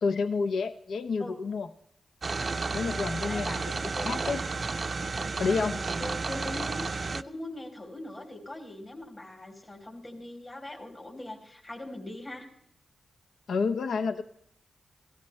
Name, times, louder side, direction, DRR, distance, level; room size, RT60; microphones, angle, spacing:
voice 1, 0.0-1.7 2.7-3.6 4.0-4.4 5.4-5.8 13.5-14.2, left 4 dB, 80° left, 10 dB, 0.6 m, -29 dB
sound 1, 2.2-7.2, right 4 dB, 50° right, 0.5 m, -32 dB
voice 2, 3.3-3.7 3.9-4.1 6.0-12.5, left 1 dB, 40° left, 0 dB, 3.6 m, -41 dB
16.0 x 12.5 x 3.2 m, 0.70 s
cardioid pair, 55°, 0 cm